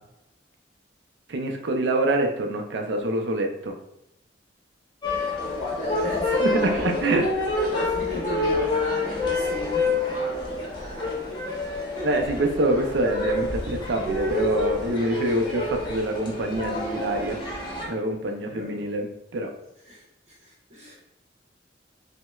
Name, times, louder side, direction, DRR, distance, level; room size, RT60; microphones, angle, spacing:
voice 1, 1.3-3.8 6.4-7.2 12.0-17.4 17.9-19.5, right 1 dB, 75° right, 3 dB, 0.5 m, -26 dB
sound 1, 5.0-17.9, left 2 dB, 25° left, 0.8 m, -28 dB
voice 2, 5.4-7.4 7.7-11.1 18.5-18.8 19.8-21.0, left 1 dB, 40° right, -6 dB, 0.9 m, -35 dB
5.7 x 2.1 x 2.3 m, 0.87 s
head